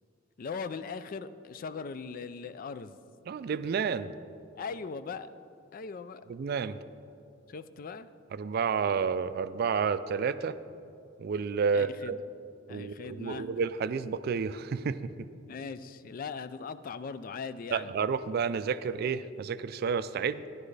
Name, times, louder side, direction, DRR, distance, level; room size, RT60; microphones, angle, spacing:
voice 1, 0.4-3.0 4.6-5.3 5.7-6.2 7.5-8.1 11.7-12.2 12.7-13.5 15.5-17.9, left 5 dB, 45° left, 13 dB, 0.3 m, -39 dB
voice 2, 3.3-4.1 6.3-6.8 8.3-10.6 11.2-12.1 12.7-15.0 17.7-20.5, right 6 dB, 55° right, 14 dB, 0.3 m, -30 dB
13.5 x 10.5 x 3.3 m, 2.7 s
head